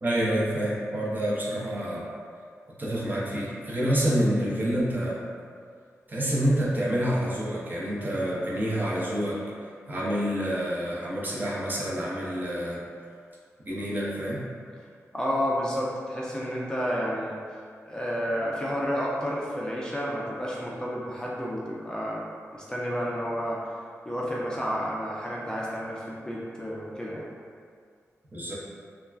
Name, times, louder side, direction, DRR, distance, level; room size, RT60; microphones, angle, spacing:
voice 1, 0.0-2.1 2.8-5.2 6.1-9.4 9.9-12.8 13.7-14.4 28.3-28.5, equal, 35° right, -6 dB, 0.6 m, -27 dB
voice 2, 15.1-17.4 17.8-22.3 22.5-23.6 24.1-27.3, equal, 15° left, -5 dB, 0.4 m, -30 dB
2.3 x 2.1 x 3.3 m, 2.1 s
wide cardioid pair, 75°, 6 cm